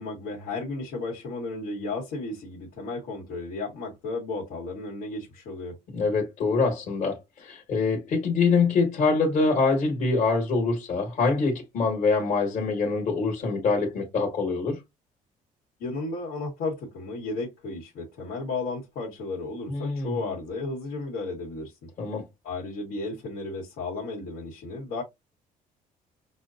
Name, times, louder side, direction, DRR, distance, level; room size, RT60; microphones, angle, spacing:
voice 1, 0.0-5.8 15.8-21.9 22.4-25.0, left 3 dB, 90° left, 1.4 m, -34 dB
voice 2, 5.9-14.8 19.7-20.2 22.0-22.2, left 4 dB, 55° left, 1.4 m, -24 dB
6.1 x 2.2 x 2.5 m
cardioid pair, 180°, 15 cm